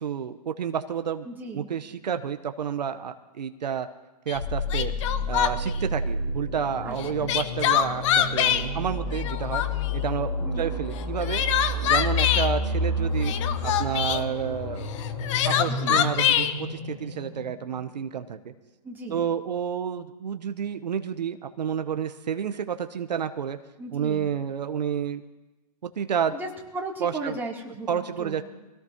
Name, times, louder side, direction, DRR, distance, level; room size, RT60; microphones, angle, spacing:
voice 1, 0.0-1.3 1.5-3.9 4.3-4.9 5.3-9.6 9.9-11.4 11.8-13.3 13.6-14.9 15.4-18.4 19.1-23.6 23.9-25.2 26.0-26.3 27.0-27.3 27.9-28.4, right 8 dB, 80° right, 8 dB, 0.9 m, -30 dB
voice 2, 1.2-1.7 6.8-7.3 10.4-10.7 15.7-16.1 18.8-19.2 23.8-24.3 26.3-28.4, right 2 dB, 10° right, -3 dB, 2.8 m, -36 dB
Crying sobbing, 4.3-4.4 4.7-5.8 7.0-8.6 9.1-9.9 11.0-12.5 13.2-14.2 15.0-16.5, left 10 dB, 45° left, 1.0 m, -24 dB
sound 1, 4.4-18.1, left 2 dB, 65° left, 3.8 m, -30 dB
24.0 x 17.5 x 2.9 m, 1.0 s
hypercardioid pair, 130°, 21 cm